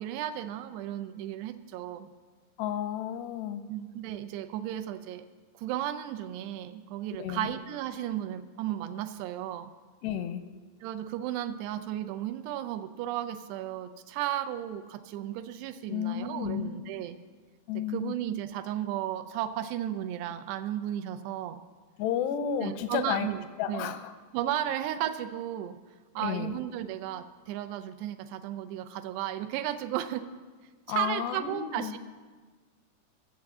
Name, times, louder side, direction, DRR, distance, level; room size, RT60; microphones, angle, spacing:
voice 1, 0.0-2.1 3.7-5.3 5.6-9.7 10.8-17.2 17.8-21.6 22.6-23.4 23.7-23.9 24.3-25.8 26.2-30.3 30.9-32.0, right 12 dB, 85° right, 10 dB, 2.6 m, -34 dB
voice 2, 2.6-3.6 7.2-7.5 10.0-10.4 15.9-16.9 17.7-18.2 22.0-23.3 23.6-24.1 26.2-26.6 30.9-32.0, left 9 dB, 85° left, 10 dB, 2.8 m, -32 dB
11.5 x 7.1 x 7.7 m, 1.4 s
omnidirectional pair, 4.8 m